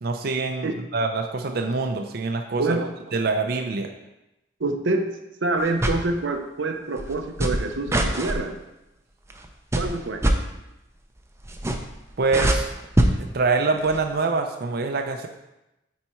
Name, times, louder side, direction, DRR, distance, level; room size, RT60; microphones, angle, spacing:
voice 1, 0.0-2.8 3.1-3.9 12.2-12.7 13.2-15.3, right 3 dB, 55° right, 4 dB, 0.5 m, -25 dB
voice 2, 2.6-2.9 4.6-5.0 5.4-8.6 9.8-10.3, right 2 dB, 90° right, 5 dB, 0.8 m, -26 dB
sound 1, 5.6-6.1 7.0-8.4 9.3-9.5 9.7-10.4 11.4-12.0 12.2-13.1 13.8-14.0, right 1 dB, 15° right, 0.6 m, -22 dB
9.1 x 4.2 x 4.4 m, 0.92 s
head